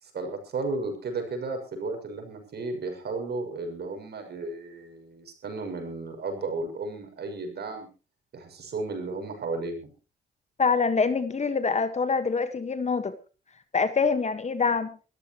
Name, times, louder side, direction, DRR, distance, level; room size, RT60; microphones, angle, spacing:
voice 1, 0.0-7.9 8.3-9.9, right 3 dB, 55° right, 5 dB, 6.6 m, -34 dB
voice 2, 10.6-13.1 13.7-15.0, left 5 dB, 35° left, 11 dB, 1.6 m, -25 dB
23.5 x 14.0 x 3.1 m, 0.34 s
cardioid pair, 90°, 20 cm